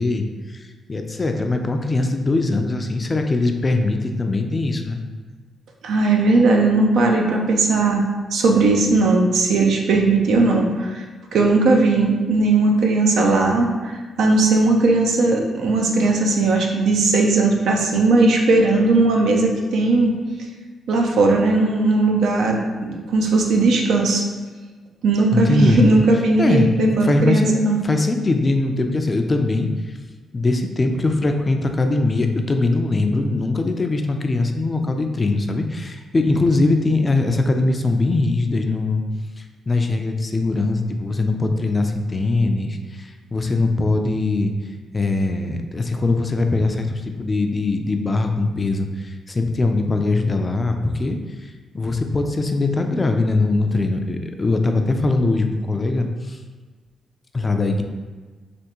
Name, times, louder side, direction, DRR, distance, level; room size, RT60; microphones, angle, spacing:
voice 1, 0.0-5.0 25.3-25.9 26.4-26.7 27.0-27.5 27.8-30.0 30.3-39.0 39.4-44.5 44.9-56.4 57.3-57.8, left 2 dB, 35° left, 5 dB, 0.3 m, -21 dB
voice 2, 5.8-8.0 8.3-11.0 11.3-20.2 20.9-24.2 25.0-27.8, right 3 dB, 75° right, 1 dB, 0.5 m, -18 dB
3.4 x 2.4 x 2.9 m, 1.4 s
supercardioid pair, 65°, 0 cm